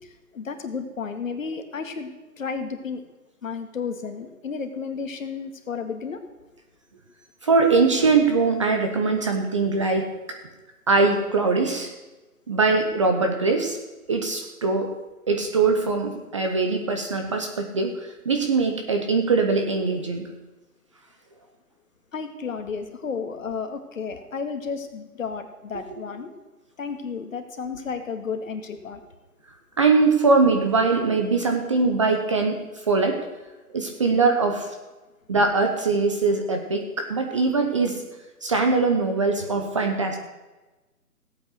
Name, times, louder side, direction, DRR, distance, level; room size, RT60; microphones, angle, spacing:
voice 1, 0.0-3.0 3.4-6.2 22.1-26.3 26.8-29.0, left 5 dB, 55° left, 6 dB, 2.0 m, -32 dB
voice 2, 7.4-10.1 10.9-11.9 12.5-13.8 14.1-14.9 15.3-20.3 29.8-32.6 32.9-33.2 33.7-34.7 35.3-38.0 38.4-40.2, right 4 dB, 20° right, 4 dB, 0.8 m, -22 dB
16.5 x 8.6 x 6.4 m, 1.1 s
hypercardioid pair, 155°, 47 cm